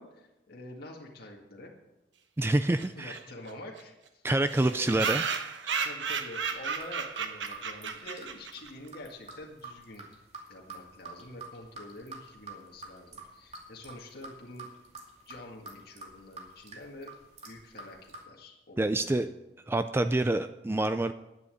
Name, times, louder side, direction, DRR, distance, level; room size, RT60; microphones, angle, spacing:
voice 1, 0.0-1.7 3.0-4.2 4.6-5.0 5.8-10.1 10.5-14.7 15.3-17.1 17.4-19.3, left 1 dB, 55° left, -1 dB, 1.9 m, -47 dB
voice 2, 2.4-3.2 4.2-5.2 5.6-5.9 18.8-19.3 19.7-21.1, right 2 dB, 15° right, 10 dB, 0.3 m, -27 dB
sound 1, 2.8-2.9 3.1-3.2 3.5-3.6 3.8-3.9 4.5-8.7, right 6 dB, 75° right, 1.1 m, -33 dB
sound 2, 6.2-18.2, right 3 dB, 35° right, 2.4 m, -47 dB
11.0 x 9.7 x 7.7 m, 0.96 s
head